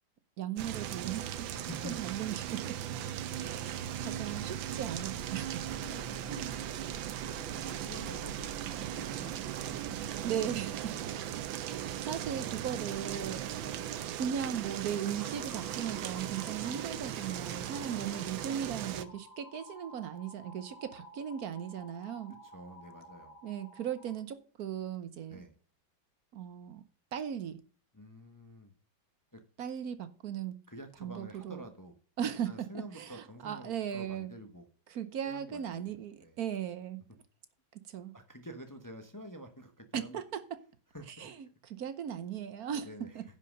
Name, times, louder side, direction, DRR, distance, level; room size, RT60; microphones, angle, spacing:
voice 1, 0.4-2.8 3.4-5.6 6.3-6.6 10.2-10.9 11.7-13.4 14.1-22.4 23.4-25.4 26.3-26.8 27.1-27.6 29.6-30.5 31.0-31.6 32.2-32.7 32.9-34.3 34.9-37.0 37.9-38.1 39.9-40.6 41.2-42.9 43.1-43.2, right 9 dB, 60° right, 1.1 m, -37 dB
sound 1, 0.6-19.1, right 10 dB, 75° right, 1.5 m, -38 dB
voice 2, 1.5-2.1 5.8-6.2 7.3-11.0 13.5-13.9 22.3-23.4 25.3-25.6 27.9-28.7 29.3-29.4 30.7-31.9 32.5-34.7 35.2-36.4 38.1-40.2 40.9-41.3 42.8-43.2, equal, 15° left, 0.8 m, -49 dB
sound 2, 14.8-24.2, left 2 dB, 40° left, 2.9 m, -53 dB
10.5 x 5.7 x 6.4 m
omnidirectional pair, 2.2 m